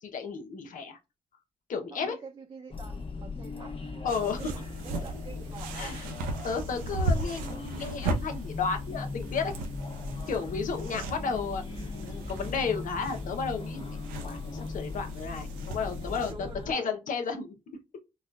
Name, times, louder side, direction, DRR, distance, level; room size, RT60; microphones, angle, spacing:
voice 1, 0.0-1.0 1.7-2.2 4.0-4.5 5.7-6.0 6.4-9.5 10.3-11.6 12.0-14.0 14.2-17.5, left 5 dB, 60° left, 0.8 m, -33 dB
voice 2, 1.9-6.1 10.8-11.0 16.0-16.9, right 4 dB, 30° right, 0.7 m, -47 dB
sound 1, 2.7-16.7, left 3 dB, 35° left, 1.0 m, -38 dB
sound 2, 4.1-16.3, right 2 dB, 85° right, 0.6 m, -37 dB
4.0 x 2.3 x 2.5 m
hypercardioid pair, 45°, 15 cm